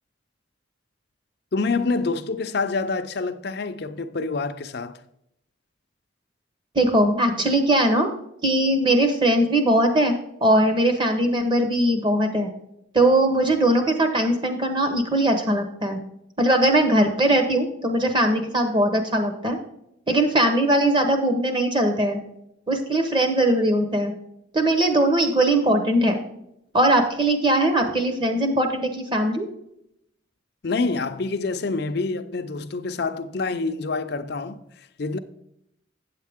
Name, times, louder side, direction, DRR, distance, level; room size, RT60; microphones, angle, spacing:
voice 1, 1.5-5.0 30.6-34.6 35.0-35.2, left 3 dB, 55° left, 0.5 m, -27 dB
voice 2, 6.7-8.1 8.4-10.1 10.4-12.5 12.9-16.0 16.4-19.6 20.1-22.2 22.7-24.1 24.5-26.2 26.7-29.5, right 1 dB, 25° right, 1.0 m, -20 dB
8.8 x 7.4 x 3.6 m
head